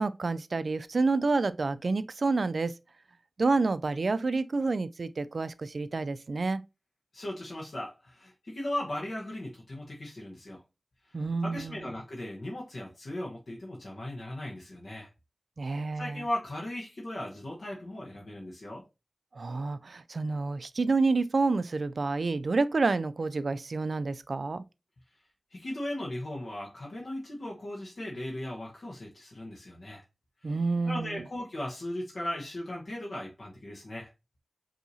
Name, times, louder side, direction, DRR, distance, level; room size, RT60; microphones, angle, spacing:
voice 1, 0.0-2.7 3.4-6.6 11.1-11.9 15.6-16.2 19.3-24.6 30.4-31.2, right 3 dB, 65° right, 0.3 m, -29 dB
voice 2, 7.1-10.6 11.1-15.1 15.9-18.8 25.5-30.0 30.4-30.5 30.8-34.1, left 1 dB, 65° left, 1.0 m, -37 dB
5.3 x 2.8 x 2.7 m
wide cardioid pair, 70°, 0 cm